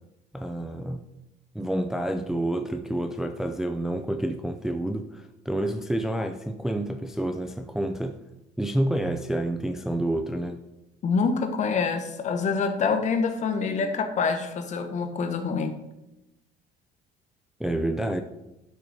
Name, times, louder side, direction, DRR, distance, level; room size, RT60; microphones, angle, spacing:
voice 1, 0.3-1.0 1.5-8.2 8.6-10.6 17.6-18.2, right 1 dB, ahead, 6 dB, 0.4 m, -28 dB
voice 2, 11.0-15.7, left 5 dB, 40° left, 7 dB, 1.1 m, -26 dB
11.5 x 6.2 x 4.1 m, 0.94 s
cardioid pair, 150°, 18 cm